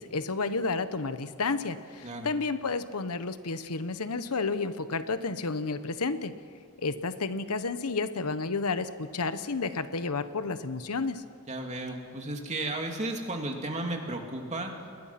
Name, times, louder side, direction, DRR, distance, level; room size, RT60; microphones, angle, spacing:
voice 1, 0.0-6.3 6.8-11.2, left 4 dB, 85° left, 11 dB, 1.1 m, -31 dB
voice 2, 11.5-14.7, right 2 dB, 30° right, 2 dB, 2.7 m, -34 dB
29.0 x 21.0 x 5.9 m, 2.3 s
head